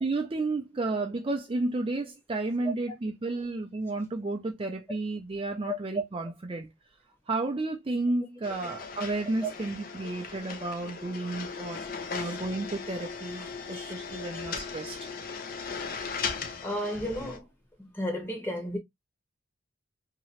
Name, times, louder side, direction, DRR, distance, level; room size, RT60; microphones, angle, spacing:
voice 1, 0.0-6.7 7.3-11.8 12.1-15.1, right 2 dB, 25° right, 0.4 m, -32 dB
sound 1, 8.4-17.4, left 5 dB, 45° left, 0.6 m, -38 dB
voice 2, 13.6-13.9 16.6-17.4 17.8-18.8, equal, 10° left, 1.0 m, -33 dB
2.9 x 2.8 x 2.9 m
head